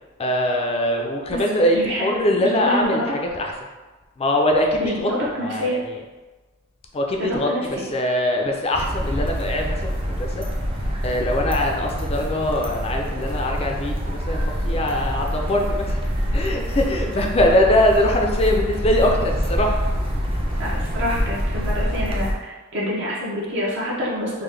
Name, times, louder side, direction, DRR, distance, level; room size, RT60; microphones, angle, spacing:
voice 1, 0.2-3.5 4.2-5.1 5.4-6.0 6.9-10.4 11.0-16.0 16.3-19.8 20.7-20.8, left 1 dB, 30° left, 2 dB, 0.4 m, -22 dB
voice 2, 1.3-2.1 2.4-3.2 4.8-5.8 7.2-7.8 20.6-24.3, equal, 60° right, -5 dB, 0.7 m, -27 dB
sound 1, 8.7-22.3, equal, 25° right, 0.5 m, -25 dB
3.7 x 2.1 x 3.2 m, 1.2 s
head